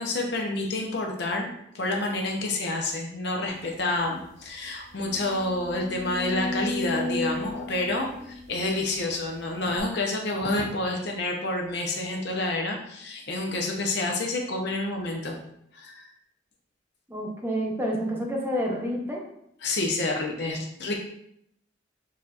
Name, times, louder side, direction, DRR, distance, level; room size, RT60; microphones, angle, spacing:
voice 1, 0.0-15.3 15.7-16.1 19.6-21.0, left 2 dB, 65° left, 0 dB, 0.7 m, -29 dB
sound 1, 3.7-3.8 4.2-4.3 4.9-9.1 9.8-9.9, left 2 dB, 75° right, 0.8 m, -34 dB
voice 2, 17.1-19.2, equal, 10° right, -2 dB, 0.8 m, -29 dB
6.6 x 2.7 x 2.5 m, 0.74 s
head